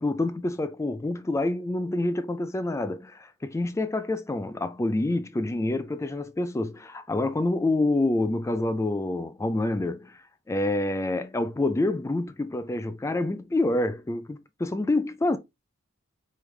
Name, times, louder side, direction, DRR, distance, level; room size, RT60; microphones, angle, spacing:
voice 1, 0.0-15.4, left 2 dB, 15° left, 0.3 m, -27 dB
5.2 x 3.2 x 3.2 m
head